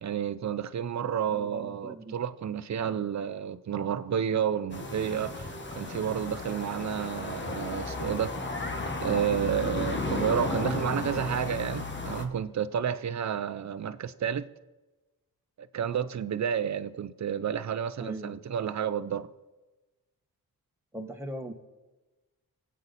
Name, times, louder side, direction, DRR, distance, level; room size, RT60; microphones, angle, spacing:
voice 1, 0.0-8.4 9.0-14.5 15.6-19.3, right 8 dB, 50° right, 0.7 m, -30 dB
voice 2, 1.3-2.2 2.8-3.0 18.0-18.4 20.9-21.5, right 1 dB, 5° right, 1.7 m, -40 dB
sound 1, 4.7-12.3, left 3 dB, 30° left, 1.3 m, -34 dB
24.0 x 8.5 x 4.2 m
cardioid pair, 95°, 37 cm